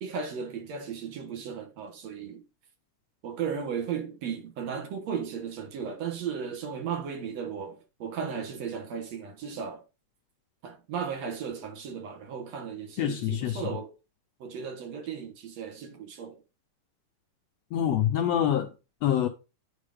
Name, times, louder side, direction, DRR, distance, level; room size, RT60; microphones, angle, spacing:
voice 1, 0.0-2.4 3.2-9.8 10.6-13.9 14.4-16.4, right 7 dB, 60° right, 2.3 m, -35 dB
voice 2, 13.0-13.6 17.7-18.7 19.0-19.3, left 10 dB, 75° left, 1.6 m, -25 dB
9.6 x 4.4 x 4.9 m
omnidirectional pair, 3.6 m